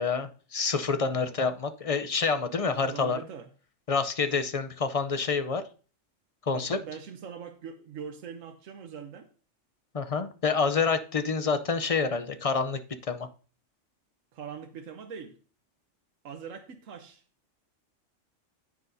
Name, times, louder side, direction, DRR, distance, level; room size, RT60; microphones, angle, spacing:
voice 1, 0.0-3.2 3.9-5.6 6.5-6.8 9.9-12.8 13.1-13.3, left 5 dB, 40° left, 0.6 m, -27 dB
voice 2, 2.6-3.5 6.5-9.3 14.3-15.4 16.2-17.2, right 6 dB, 80° right, 1.2 m, -42 dB
9.7 x 9.5 x 2.7 m
omnidirectional pair, 1.3 m